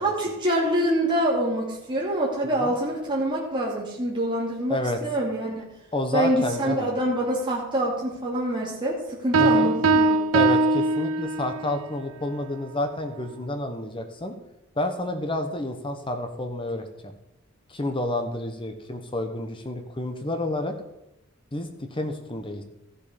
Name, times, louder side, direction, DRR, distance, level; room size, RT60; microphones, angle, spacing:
voice 1, 0.0-5.7 6.1-10.2, right 1 dB, 20° right, -4 dB, 2.7 m, -26 dB
voice 2, 4.7-5.0 5.9-6.9 9.4-9.7 10.3-14.4 14.8-17.1 17.7-20.8 21.5-22.6, left 1 dB, 25° left, 7 dB, 1.0 m, -29 dB
sound 1, 9.3-11.7, right 3 dB, 65° right, 0.6 m, -21 dB
14.0 x 7.2 x 5.1 m, 0.87 s
head